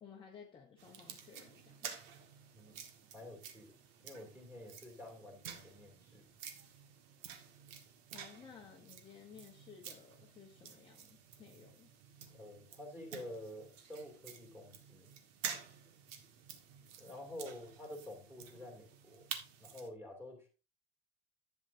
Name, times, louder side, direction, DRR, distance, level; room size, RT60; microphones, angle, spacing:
voice 1, 0.0-1.9 8.1-11.9, left 6 dB, 15° left, 1.0 m, -56 dB
sound 1, 0.8-19.9, right 8 dB, 80° right, 1.7 m, -50 dB
voice 2, 3.1-3.7 4.0-6.3 12.3-15.1 17.0-19.3 19.6-20.5, left 1 dB, 5° right, 2.6 m, -49 dB
11.0 x 8.0 x 2.6 m
cardioid pair, 175°, 30 cm